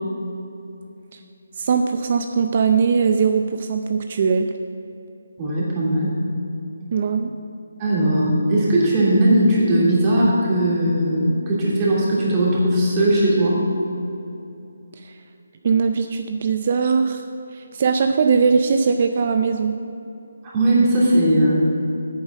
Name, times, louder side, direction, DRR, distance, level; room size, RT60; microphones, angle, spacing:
voice 1, 1.6-4.5 6.9-7.3 15.0-15.1 15.6-17.2 17.5-19.8, right 5 dB, 40° right, 6 dB, 0.5 m, -20 dB
voice 2, 5.4-6.1 7.8-13.6 20.4-21.8, right 1 dB, 20° right, -7 dB, 2.9 m, -18 dB
8.7 x 7.2 x 7.4 m, 2.8 s
figure-of-eight pair, 160°, 0 cm